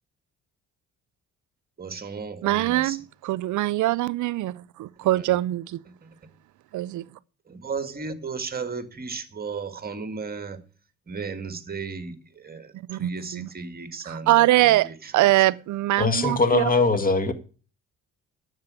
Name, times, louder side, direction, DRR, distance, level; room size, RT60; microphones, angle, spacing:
voice 1, 1.8-3.0 5.0-5.4 5.9-6.3 7.5-10.7 11.1-15.6, right 5 dB, 30° right, 1.8 m, -35 dB
voice 2, 2.4-5.8 6.7-7.1 12.7-13.5 14.1-16.6, right 16 dB, 75° right, 0.6 m, -23 dB
voice 3, 16.0-17.3, left 3 dB, 30° left, 1.8 m, -21 dB
10.5 x 7.4 x 8.2 m
cardioid pair, 90°, 30 cm